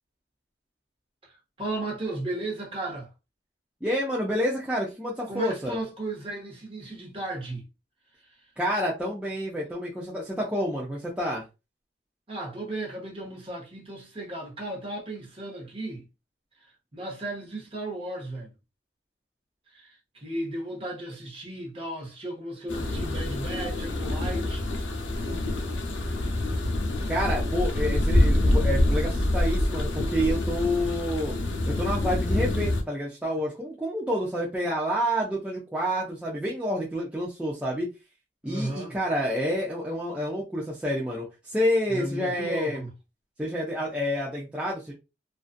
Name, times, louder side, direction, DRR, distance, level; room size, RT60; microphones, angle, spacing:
voice 1, 1.2-3.1 5.3-7.6 12.3-16.0 16.9-18.5 19.7-24.6 38.4-39.0 41.9-42.9, right 1 dB, 30° right, 0.9 m, -35 dB
voice 2, 3.8-5.8 8.6-11.4 27.1-31.3 31.7-37.9 38.4-42.8 43.4-44.9, equal, 5° right, 0.5 m, -28 dB
sound 1, 22.7-32.8, left 1 dB, 80° left, 0.6 m, -26 dB
2.5 x 2.3 x 2.4 m
head